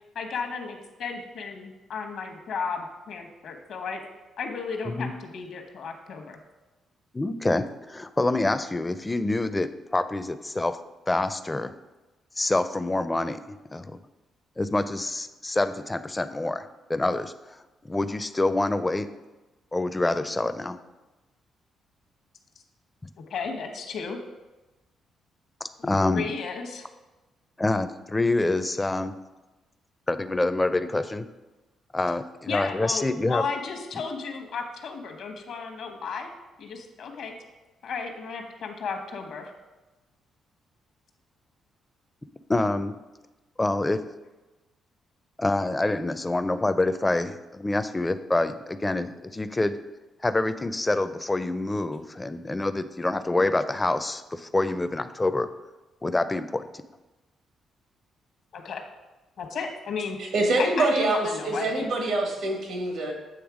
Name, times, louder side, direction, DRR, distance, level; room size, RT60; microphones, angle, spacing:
voice 1, 0.1-4.0 4.4-6.4 23.3-24.2 25.8-26.9 32.5-36.3 36.6-37.3 37.8-39.5 58.5-58.8 59.4-60.2 60.6-61.9, left 5 dB, 70° left, 4 dB, 1.0 m, -34 dB
voice 2, 7.1-10.8 11.1-11.7 12.4-14.0 14.6-17.3 17.8-19.1 19.7-20.8 25.6-26.3 27.6-29.2 30.1-31.3 31.9-33.4 42.5-43.0 43.6-44.0 45.4-49.8 50.2-55.5 56.0-56.7, left 2 dB, 20° left, 12 dB, 0.4 m, -26 dB
voice 3, 60.2-63.1, right 2 dB, 85° right, 2 dB, 1.5 m, -25 dB
8.0 x 3.3 x 4.8 m, 1.1 s
cardioid pair, 75°, 0 cm